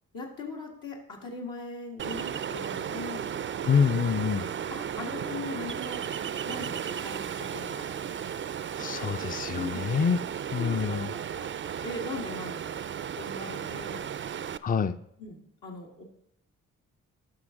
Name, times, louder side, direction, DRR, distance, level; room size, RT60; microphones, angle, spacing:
voice 1, 0.1-3.3 4.7-6.1 6.4-7.9 9.5-9.8 10.6-11.5 11.8-12.7 13.2-14.1 15.2-16.0, left 3 dB, 75° left, -2 dB, 1.6 m, -40 dB
Ocean, 2.0-14.6, right 8 dB, 35° right, 0.4 m, -35 dB
voice 2, 3.7-4.5 8.8-10.2 10.5-11.1 14.6-15.0, left 6 dB, 25° left, 13 dB, 0.5 m, -26 dB
11.0 x 5.9 x 3.6 m, 0.73 s
supercardioid pair, 40°, 34 cm